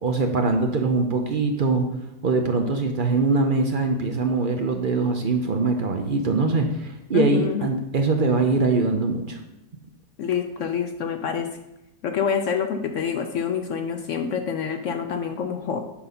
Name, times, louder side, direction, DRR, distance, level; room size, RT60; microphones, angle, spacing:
voice 1, 0.0-1.8 2.2-9.4, right 3 dB, 60° right, 4 dB, 0.5 m, -22 dB
voice 2, 7.1-7.6 10.2-11.5 12.0-15.8, left 7 dB, 65° left, 6 dB, 0.8 m, -26 dB
8.6 x 4.0 x 5.6 m, 0.93 s
omnidirectional pair, 1.7 m